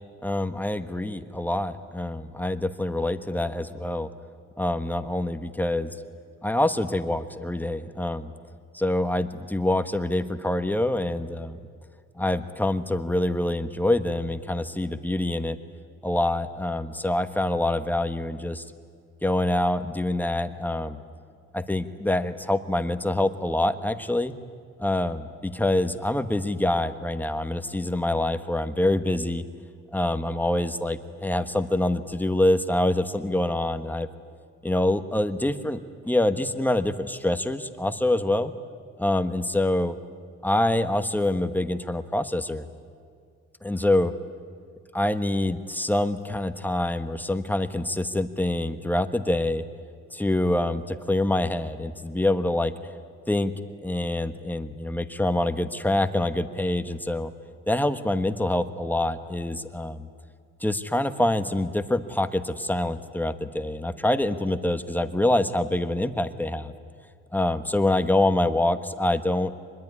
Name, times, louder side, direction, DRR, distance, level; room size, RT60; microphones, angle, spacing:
voice 1, 0.2-4.1 4.6-5.9 6.4-8.3 8.7-11.6 12.2-15.6 16.0-18.6 19.2-21.0 21.5-24.3 24.8-29.4 29.9-34.1 34.6-38.5 39.0-40.0 40.4-42.6 43.6-44.1 44.9-49.6 50.1-52.7 53.3-53.5 53.8-57.3 57.7-60.1 60.6-66.7 67.3-69.5, left 1 dB, 5° left, 10 dB, 1.3 m, -25 dB
24.5 x 21.0 x 9.7 m, 2.1 s
cardioid pair, 90°, 30 cm